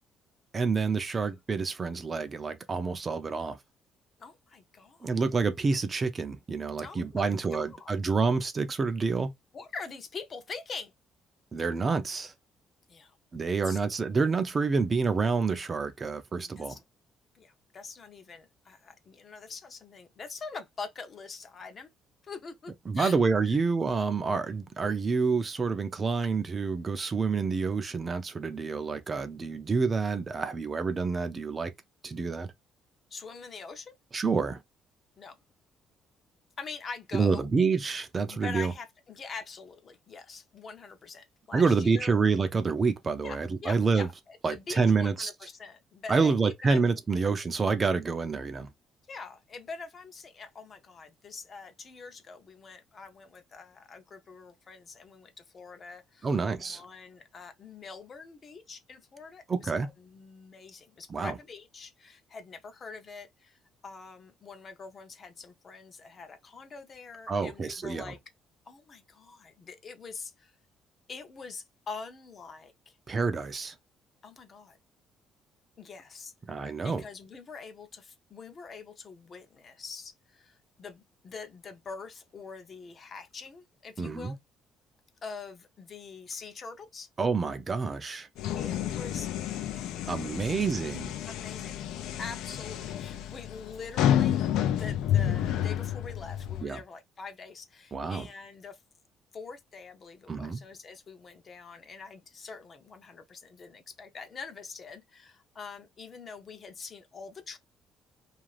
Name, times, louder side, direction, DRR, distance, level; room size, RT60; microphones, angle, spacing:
voice 1, 0.5-3.6 5.0-9.3 11.5-12.3 13.3-16.8 22.9-31.7 32.0-32.5 34.1-34.6 37.1-38.7 41.5-44.1 44.4-45.3 46.1-48.7 56.2-56.8 59.5-59.9 61.1-61.3 67.3-68.1 73.1-73.7 76.5-77.0 84.0-84.4 87.2-88.3 90.1-91.1 96.6-96.8 97.9-98.3 100.3-100.6, right 4 dB, 25° right, 0.4 m, -28 dB
voice 2, 4.2-5.1 6.8-8.0 9.5-10.9 12.9-13.1 13.4-13.8 16.6-16.8 17.3-21.9 22.2-23.2 23.4-23.5 33.1-33.9 35.2-35.4 36.6-37.5 38.3-42.2 43.2-46.9 49.1-56.3 56.6-68.2 68.7-70.5 71.1-73.0 74.2-74.8 75.8-76.3 76.6-84.3 85.2-87.1 88.5-89.3 89.7-89.9 90.2-90.5 91.3-91.8 92.2-98.8 99.3-107.6, left 4 dB, 35° left, 0.6 m, -44 dB
sound 1, 88.4-96.6, left 10 dB, 85° left, 0.4 m, -30 dB
2.4 x 2.4 x 3.1 m
cardioid pair, 135°, 0 cm